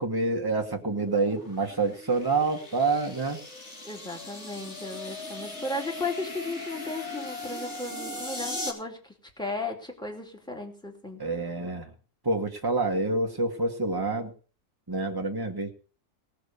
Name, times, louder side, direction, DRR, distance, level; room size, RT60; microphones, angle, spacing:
voice 1, 0.0-3.4 11.2-11.9 12.2-14.3 14.9-15.7, right 3 dB, 15° right, 2 dB, 2.0 m, -27 dB
sound 1, 0.7-8.7, left 1 dB, 60° left, 3.4 m, -39 dB
voice 2, 3.8-11.2, left 2 dB, 5° left, 2 dB, 2.8 m, -35 dB
18.5 x 6.6 x 6.9 m, 0.39 s
omnidirectional pair, 1.4 m